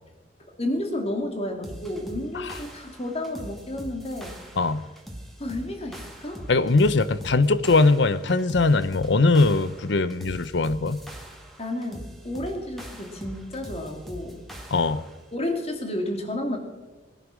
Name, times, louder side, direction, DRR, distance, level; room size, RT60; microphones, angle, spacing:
voice 1, 0.6-4.4 5.4-6.5 11.6-14.4 15.3-16.6, left 1 dB, 30° left, 4 dB, 2.4 m, -31 dB
sound 1, 1.6-15.2, equal, ahead, 2.0 m, -42 dB
voice 2, 6.5-11.0 14.7-15.0, left 3 dB, 65° left, 15 dB, 0.7 m, -21 dB
20.5 x 11.0 x 6.3 m, 1.2 s
head